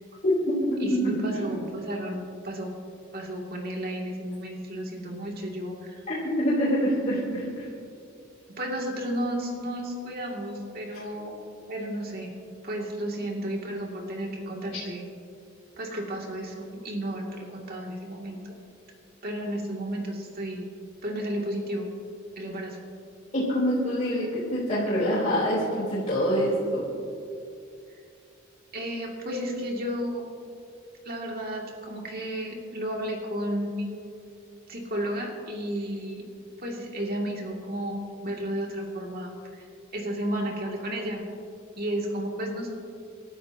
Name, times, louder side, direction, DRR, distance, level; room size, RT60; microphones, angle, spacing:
voice 1, 0.2-1.2 6.1-7.7 10.9-11.0 23.3-26.8, equal, 40° left, -9 dB, 3.6 m, -25 dB
voice 2, 0.8-2.7 3.1-6.0 8.5-11.3 11.7-12.3 12.6-15.1 15.8-18.4 19.2-20.7 21.0-21.9 22.4-22.8 28.7-30.3 31.0-33.9 34.7-36.3 36.6-39.6 39.9-41.3 41.8-42.8, equal, 50° right, -1 dB, 2.6 m, -32 dB
29.0 x 12.5 x 2.9 m, 2.5 s
head